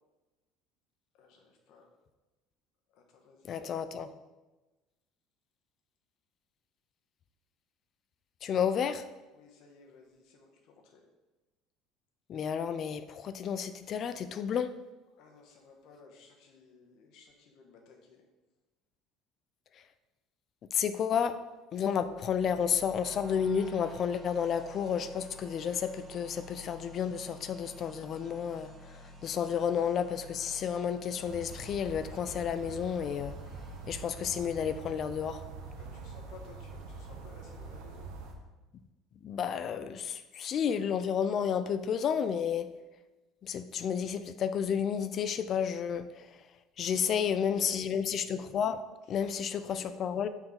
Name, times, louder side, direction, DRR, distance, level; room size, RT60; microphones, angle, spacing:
voice 1, 1.1-1.9 2.9-3.7 9.3-11.0 15.1-18.2 35.8-38.1 46.8-47.8 49.0-49.9, left 4 dB, 60° left, 2 dB, 1.3 m, -56 dB
voice 2, 3.4-4.1 8.4-9.1 12.3-14.8 20.7-21.4 21.7-33.4 33.9-35.4 39.2-42.7 43.4-46.4 46.8-48.8 49.1-50.3, left 7 dB, 40° left, 12 dB, 0.4 m, -31 dB
sound 1, 21.9-35.0, left 1 dB, 15° right, 1.2 m, -51 dB
sound 2, 31.2-38.3, right 4 dB, 80° right, 1.1 m, -45 dB
7.7 x 4.5 x 3.8 m, 1.1 s
cardioid pair, 145°, 0 cm